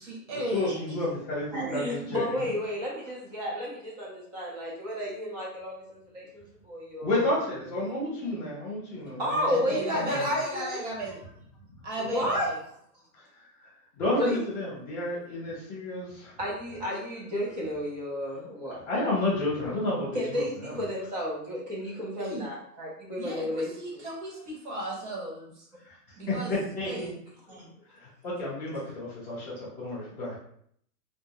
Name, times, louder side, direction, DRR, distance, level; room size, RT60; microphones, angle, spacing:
voice 1, 0.0-0.8 9.5-11.2 11.8-12.6 22.2-22.5 23.2-25.7 26.2-26.6 26.8-27.2, right 1 dB, 45° right, -2 dB, 1.0 m, -35 dB
voice 2, 0.5-2.5 7.0-9.5 9.9-10.3 13.1-13.3 13.6-13.7 13.9-16.3 18.9-20.8 25.8-25.9 26.3-27.1 27.9-30.4, left 2 dB, 5° left, -13 dB, 0.8 m, -31 dB
voice 3, 1.5-7.3 9.2-10.8 12.0-12.5 14.1-14.4 16.4-18.8 20.1-24.0 24.3-24.4 26.1-26.2 27.5-27.7, equal, 25° right, -4 dB, 0.7 m, -32 dB
2.3 x 2.1 x 3.5 m, 0.66 s
hypercardioid pair, 165°, 48 cm